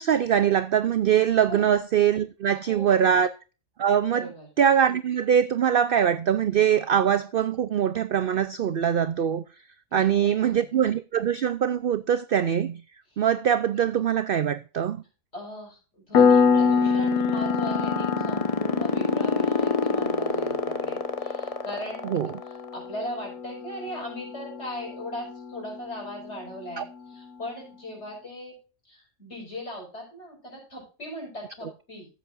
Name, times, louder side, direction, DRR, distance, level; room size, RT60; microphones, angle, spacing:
voice 1, 0.0-3.3 3.8-4.3 4.6-9.4 9.9-12.8 13.2-15.0 22.0-22.3 26.8-26.9, right 9 dB, 65° right, 0.5 m, -23 dB
voice 2, 2.5-3.1 4.1-4.5 9.9-10.6 13.1-13.2 15.3-22.2 22.4-28.6 28.9-32.1, equal, 50° left, 5.5 m, -39 dB
Piano, 16.1-26.5, left 5 dB, 85° left, 1.5 m, -27 dB
sound 1, 16.1-22.7, left 4 dB, 30° left, 0.9 m, -25 dB
14.5 x 8.0 x 2.5 m
omnidirectional pair, 1.5 m